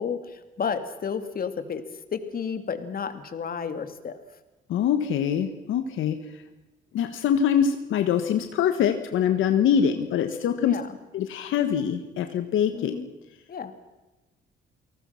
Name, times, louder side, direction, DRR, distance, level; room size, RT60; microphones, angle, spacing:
voice 1, 0.0-1.8 2.1-4.2 10.6-11.0 12.7-13.1 13.5-13.7, left 6 dB, 45° left, 9 dB, 2.6 m, -31 dB
voice 2, 4.7-6.2 6.9-10.8 11.1-13.0, left 8 dB, 80° left, 7 dB, 1.6 m, -24 dB
29.5 x 18.5 x 5.9 m, 1.1 s
cardioid pair, 90°, 20 cm